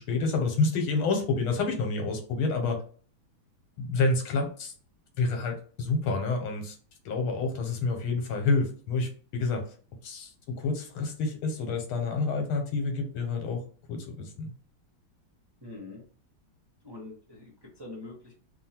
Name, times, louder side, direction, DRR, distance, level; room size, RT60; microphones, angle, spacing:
voice 1, 0.0-2.8 3.8-4.7 5.2-6.8 7.1-9.6 10.0-10.3 10.6-13.6 13.9-14.5, left 3 dB, 85° left, 4 dB, 1.7 m, -28 dB
voice 2, 15.6-16.0 16.8-18.3, left 2 dB, 35° right, -4 dB, 0.4 m, -44 dB
3.6 x 2.3 x 4.3 m, 0.43 s
omnidirectional pair, 2.2 m